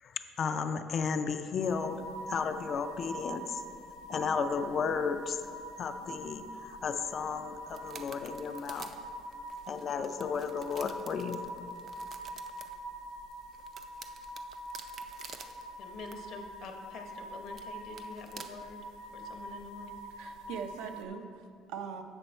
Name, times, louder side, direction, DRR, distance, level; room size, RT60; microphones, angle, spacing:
voice 1, 0.0-3.6 4.1-5.4 5.8-8.9 9.7-11.4, left 6 dB, 35° left, 8 dB, 0.3 m, -34 dB
sound 1, 1.6-21.1, right 1 dB, 85° left, 0.6 m, -44 dB
sound 2, 7.6-12.8 13.3-15.7 16.0-16.1 17.1-17.2 17.5-17.6 17.9-18.6, right 5 dB, 35° right, 0.4 m, -49 dB
voice 2, 15.8-18.8 19.1-20.0, left 4 dB, 55° left, 3 dB, 0.8 m, -46 dB
voice 3, 20.2-22.0, right 6 dB, 80° right, 6 dB, 0.6 m, -41 dB
7.9 x 6.1 x 4.3 m, 2.2 s
cardioid pair, 160°, 0 cm